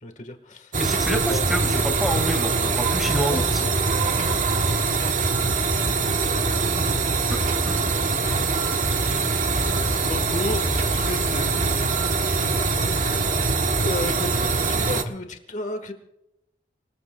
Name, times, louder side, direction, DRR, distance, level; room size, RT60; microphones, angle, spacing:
voice 1, 0.0-0.8 1.3-1.5 2.6-2.8 3.0-3.8 5.9-6.1 10.1-12.8 13.8-15.9, left 2 dB, 45° left, 6 dB, 1.4 m, -34 dB
sound 1, 0.7-15.0, right 4 dB, 45° right, 1.1 m, -23 dB
voice 2, 0.8-3.6 7.3-7.4 7.7-7.8, equal, ahead, 4 dB, 1.9 m, -27 dB
29.5 x 20.0 x 2.3 m, 0.85 s
head